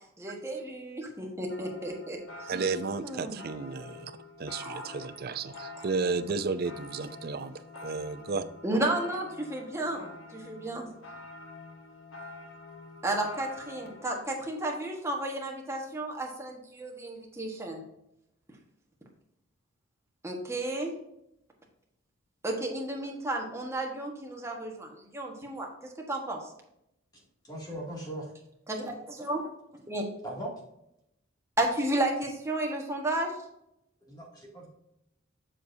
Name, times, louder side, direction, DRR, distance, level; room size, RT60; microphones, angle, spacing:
voice 1, 0.2-2.2 3.0-3.4 4.6-4.8 8.6-10.9 13.0-17.8 20.2-20.9 22.4-25.7 26.1-26.4 28.7-29.5 29.9-30.0 31.6-33.3, right 1 dB, 15° right, 0 dB, 1.4 m, -32 dB
sound 1, 1.5-14.2, left 2 dB, 70° left, 1.3 m, -47 dB
voice 2, 2.5-4.1 4.4-7.5 7.8-8.4, right 4 dB, 50° right, 11 dB, 0.5 m, -32 dB
voice 3, 27.4-28.3 30.2-30.5 34.1-34.7, right 1 dB, 20° left, -3 dB, 2.4 m, -39 dB
7.5 x 6.3 x 2.7 m, 0.81 s
head